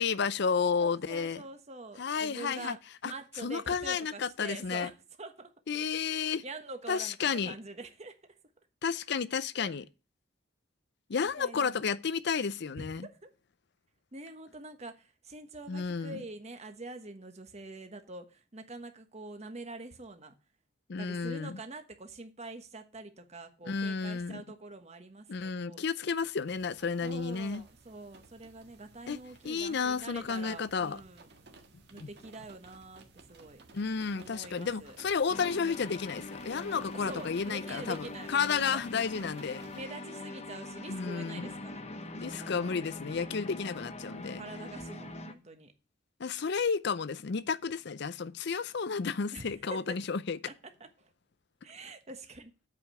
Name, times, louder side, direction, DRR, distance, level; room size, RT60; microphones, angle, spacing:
voice 1, 0.0-1.4 2.0-2.8 3.0-3.1 3.4-4.9 5.7-6.4 6.9-7.5 8.8-9.8 11.1-13.1 15.7-16.2 20.9-21.6 23.7-24.4 25.3-27.6 29.1-29.2 29.4-31.0 32.0-32.1 33.7-39.6 40.9-41.5 42.2-44.4 46.2-50.4, left 5 dB, 60° left, 0.5 m, -32 dB
voice 2, 0.8-5.5 6.4-8.4 9.6-9.7 11.2-11.9 12.8-13.3 14.1-20.3 21.0-25.8 27.0-31.3 31.9-33.6 34.1-35.0 37.0-38.8 39.7-42.7 44.3-45.7 49.3-49.8 50.8-51.1 51.6-52.5, right 2 dB, 35° right, 1.2 m, -45 dB
sound 1, 26.5-39.8, right 3 dB, 55° right, 1.6 m, -56 dB
sound 2, 35.3-45.3, left 2 dB, 35° left, 1.0 m, -43 dB
8.4 x 5.1 x 7.5 m
head